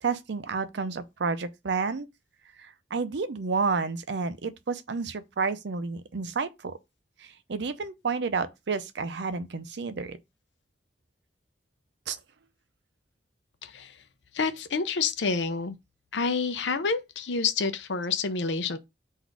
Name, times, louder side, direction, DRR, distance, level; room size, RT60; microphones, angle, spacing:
voice 1, 0.0-2.1 2.6-6.8 7.2-10.2 12.1-12.2, right 4 dB, 70° right, 0.6 m, -30 dB
voice 2, 13.6-14.0 14.3-15.8 16.1-18.8, left 4 dB, 80° left, 0.6 m, -28 dB
4.0 x 2.6 x 4.6 m
head